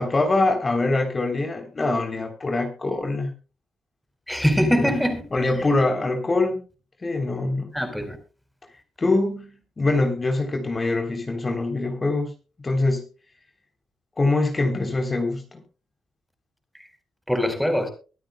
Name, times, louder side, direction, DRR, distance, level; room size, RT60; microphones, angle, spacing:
voice 1, 0.0-3.3 4.7-5.0 5.3-6.6 7.0-7.7 9.0-12.3 12.6-13.0 14.2-15.4, left 2 dB, 35° left, 3.5 m, -24 dB
voice 2, 4.3-5.2 7.7-8.2 17.3-17.9, equal, ahead, 4.4 m, -22 dB
24.0 x 9.0 x 2.3 m
cardioid pair, 70°, 0 cm